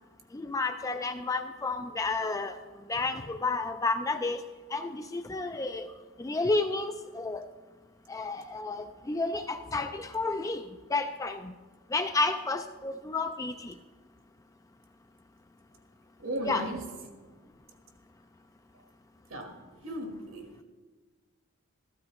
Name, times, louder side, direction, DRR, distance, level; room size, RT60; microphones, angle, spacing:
voice 1, 0.3-7.5 8.1-11.5 11.9-13.8 16.4-16.7, left 3 dB, 15° left, 8 dB, 0.3 m, -31 dB
voice 2, 16.2-16.9 19.3-19.5 19.8-20.6, right 1 dB, 65° right, 4 dB, 1.5 m, -36 dB
14.5 x 12.5 x 3.1 m, 1.3 s
head